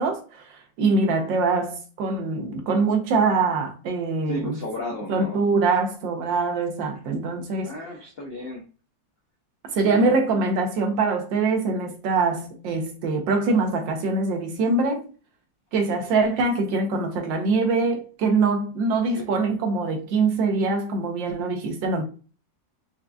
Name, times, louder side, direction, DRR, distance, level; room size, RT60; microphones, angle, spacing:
voice 1, 0.0-4.6 5.1-7.7 9.6-15.1 15.7-22.0, right 3 dB, 85° right, 1.5 m, -23 dB
voice 2, 4.3-5.4 7.6-8.6 9.8-10.2 19.1-19.3, left 1 dB, 85° left, 0.5 m, -34 dB
4.6 x 2.2 x 2.4 m
omnidirectional pair, 2.0 m